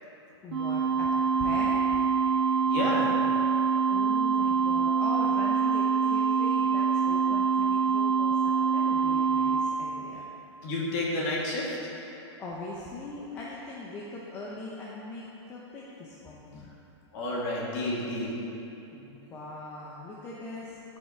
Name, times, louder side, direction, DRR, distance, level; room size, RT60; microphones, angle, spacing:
voice 1, 0.4-1.1 1.4-2.0 3.9-10.2 12.4-16.7 18.9-21.0, left 2 dB, 15° left, -5 dB, 0.7 m, -40 dB
sound 1, 0.5-9.6, right 5 dB, 80° right, 1.8 m, -25 dB
voice 2, 2.7-3.2 10.6-11.8 17.1-18.4, left 1 dB, 35° left, -4 dB, 2.0 m, -30 dB
12.5 x 5.8 x 4.4 m, 2.9 s
hypercardioid pair, 170°, 15 cm